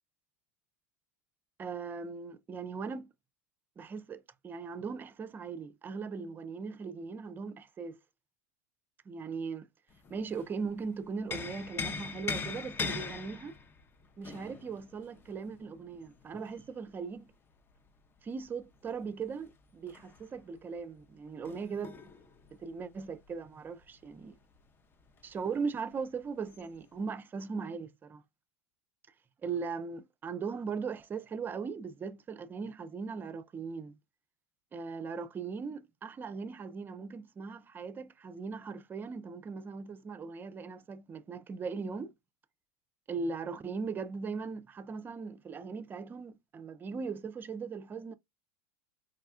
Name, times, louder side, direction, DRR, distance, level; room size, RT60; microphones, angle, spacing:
voice 1, 1.6-3.1 3.8-8.0 9.1-9.7 10.1-13.6 14.2-17.3 18.2-22.0 22.6-24.4 25.2-28.2 29.4-33.9 34.7-42.1 43.1-48.1, right 5 dB, 25° right, 0.5 m, -39 dB
sound 1, 9.9-10.7 11.0-16.5 18.5-24.2 24.5-24.6 25.0-25.7 26.5-26.7, left 5 dB, 25° left, 0.6 m, -41 dB
4.8 x 2.3 x 2.4 m
hypercardioid pair, 90°, 8 cm